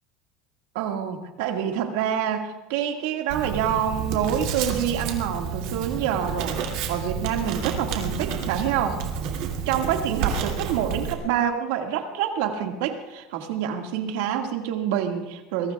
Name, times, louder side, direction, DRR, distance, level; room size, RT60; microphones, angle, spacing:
voice 1, 0.8-9.0 9.7-15.7, right 9 dB, 75° right, 3 dB, 1.9 m, -27 dB
Writing, 3.3-11.1, right 7 dB, 55° right, 2.6 m, -30 dB
24.5 x 22.0 x 2.4 m, 1.1 s
cardioid pair, 175°, 0 cm